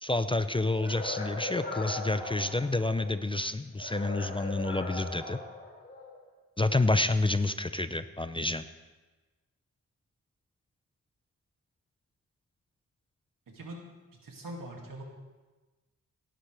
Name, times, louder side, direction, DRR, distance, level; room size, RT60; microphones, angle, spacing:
voice 1, 0.0-5.4 6.6-8.6, left 2 dB, 15° left, 11 dB, 0.5 m, -29 dB
sound 1, 0.8-3.2 3.8-6.2, left 2 dB, 30° left, 2.7 m, -39 dB
voice 2, 13.5-13.8 14.2-15.0, right 1 dB, 75° right, 1 dB, 2.4 m, -42 dB
17.5 x 11.5 x 3.4 m, 1.2 s
cardioid pair, 75°, 33 cm